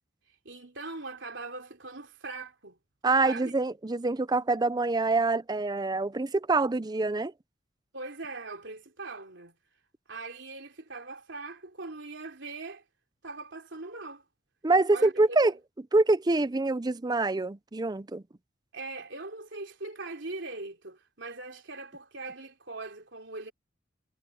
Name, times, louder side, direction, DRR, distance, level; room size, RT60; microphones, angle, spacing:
voice 1, 0.4-2.8 3.2-3.5 7.9-9.6 10.1-12.8 13.2-14.2 14.9-15.1 18.7-23.5, right 3 dB, 65° right, 3.8 m, -41 dB
voice 2, 3.0-7.3 14.6-15.5 15.9-18.2, right 3 dB, 20° right, 0.5 m, -25 dB
head